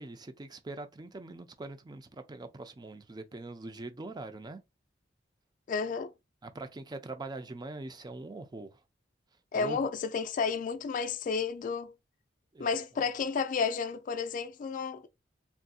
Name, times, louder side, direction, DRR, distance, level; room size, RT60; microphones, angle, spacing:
voice 1, 0.0-4.6 6.4-8.8 9.5-9.8 12.5-12.7, right 2 dB, 20° right, 0.4 m, -42 dB
voice 2, 5.7-6.1 9.5-11.9 12.6-15.1, left 5 dB, 45° left, 0.3 m, -31 dB
3.5 x 2.6 x 2.3 m
head